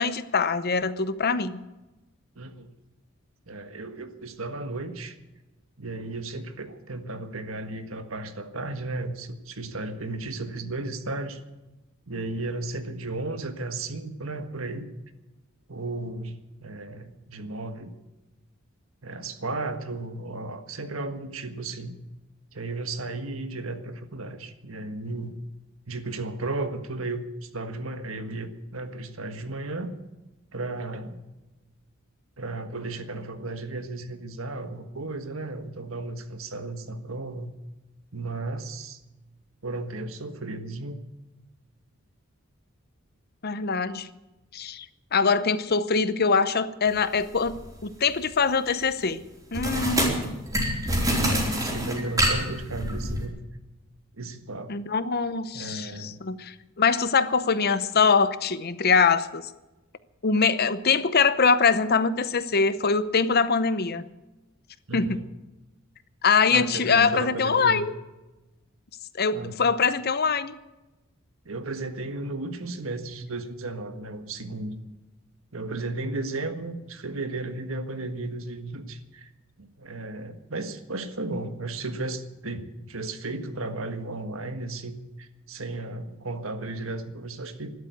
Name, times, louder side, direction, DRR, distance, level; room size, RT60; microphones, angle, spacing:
voice 1, 0.0-1.6 43.4-44.1 44.5-44.9 45.1-47.6 47.8-49.2 49.5-50.3 54.7-59.5 60.2-64.0 64.9-65.2 66.2-67.9 69.2-70.5, left 5 dB, 50° left, 14 dB, 0.8 m, -23 dB
voice 2, 2.4-2.7 3.5-5.1 5.8-11.4 12.1-14.9 15.7-17.9 19.0-22.0 22.5-25.4 25.9-29.9 30.5-31.2 32.4-37.5 38.1-39.0 39.6-41.0 50.1-50.5 50.8-53.4 54.1-54.7 55.5-56.2 64.9-65.2 66.5-67.8 69.3-69.6 71.4-74.8 75.5-79.3 79.6-87.7, right 2 dB, 75° right, 8 dB, 1.6 m, -34 dB
sound 1, 47.4-47.7 49.5-53.2, equal, 15° right, 4.2 m, -26 dB
12.5 x 12.0 x 9.3 m, 1.1 s
head